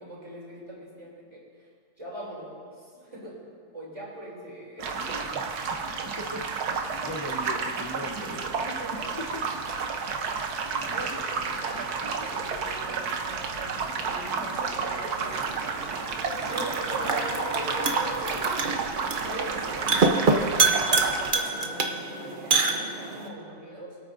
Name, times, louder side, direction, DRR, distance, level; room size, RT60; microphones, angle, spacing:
voice 1, 0.0-1.7 2.0-3.4 3.7-5.3 8.7-9.1 10.3-15.7 16.0-18.8 19.2-24.0, equal, 20° right, -5 dB, 3.3 m, -40 dB
sound 1, 4.8-21.3, right 5 dB, 80° right, 1.4 m, -31 dB
voice 2, 6.2-6.7 7.0-8.7 9.2-9.4 10.3-10.5 10.8-11.1 19.8-20.1, left 1 dB, 30° left, 0 dB, 0.4 m, -39 dB
sound 2, 15.3-23.3, right 4 dB, 40° right, 0.8 m, -27 dB
23.5 x 8.6 x 2.6 m, 2.3 s
omnidirectional pair, 1.6 m